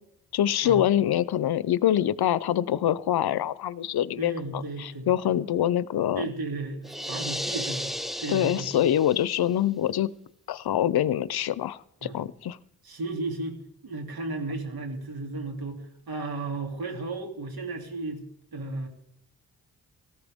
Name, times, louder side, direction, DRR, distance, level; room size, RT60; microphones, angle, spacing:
voice 1, 0.3-6.2 8.3-10.1 10.5-12.6, left 11 dB, 75° left, 18 dB, 0.6 m, -25 dB
voice 2, 4.2-5.1 6.1-8.7 12.0-12.2 12.8-18.3 18.5-18.9, right 2 dB, 70° right, 3 dB, 2.9 m, -34 dB
sound 1, 6.8-9.4, equal, ahead, 0.6 m, -34 dB
18.0 x 14.5 x 3.6 m, 0.76 s
cardioid pair, 70°, 38 cm